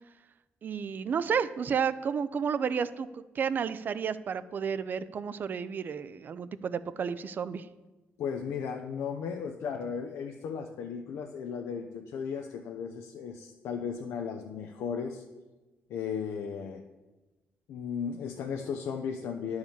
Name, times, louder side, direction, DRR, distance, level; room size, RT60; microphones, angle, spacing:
voice 1, 0.6-7.7, right 7 dB, 45° right, 14 dB, 0.5 m, -31 dB
voice 2, 8.2-15.2 15.9-16.8 17.7-19.6, left 6 dB, 85° left, 3 dB, 0.7 m, -35 dB
10.5 x 4.8 x 7.2 m, 1.1 s
cardioid pair, 130°, 4 cm